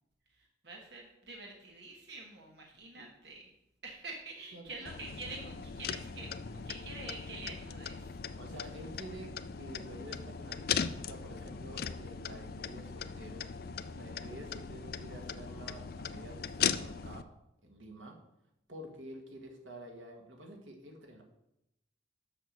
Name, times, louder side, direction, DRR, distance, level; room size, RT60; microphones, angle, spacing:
voice 1, 0.4-3.4 3.8-8.2, right 3 dB, 60° right, 0 dB, 1.3 m, -47 dB
voice 2, 4.5-4.9 8.4-13.5 13.9-17.3 17.6-18.2 18.7-21.2, right 1 dB, 90° right, 2 dB, 1.7 m, -49 dB
sound 1, 4.8-17.2, left 7 dB, 50° left, 0.4 m, -39 dB
6.9 x 5.8 x 7.3 m, 0.85 s
head